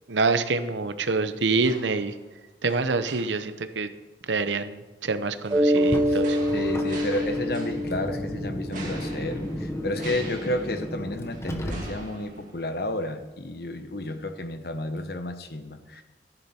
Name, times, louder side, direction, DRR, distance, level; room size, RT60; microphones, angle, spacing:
voice 1, 0.1-2.1 2.6-3.9 4.3-6.4, right 3 dB, 85° right, 11 dB, 0.8 m, -26 dB
sound 1, 1.0-2.3 2.7-3.6 5.4-8.1 8.7-13.0 13.4-13.5, right 2 dB, 45° right, 2.7 m, -44 dB
Mallet percussion, 5.5-9.9, equal, 20° right, 1.0 m, -26 dB
Car, 5.7-12.3, equal, 15° left, 1.0 m, -35 dB
voice 2, 6.5-16.0, left 1 dB, 60° left, 7 dB, 1.1 m, -31 dB
14.5 x 10.0 x 4.4 m, 1.2 s
head